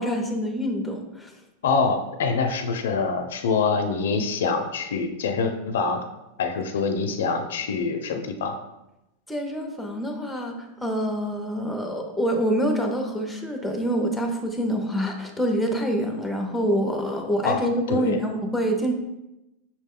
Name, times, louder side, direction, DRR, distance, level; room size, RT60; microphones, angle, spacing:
voice 1, 0.0-1.3 9.3-18.9, equal, ahead, 2 dB, 0.6 m, -26 dB
voice 2, 1.6-6.0 6.4-8.6 17.4-18.2, left 4 dB, 85° left, 5 dB, 0.4 m, -25 dB
5.9 x 2.1 x 3.6 m, 0.94 s
supercardioid pair, 140°, 0 cm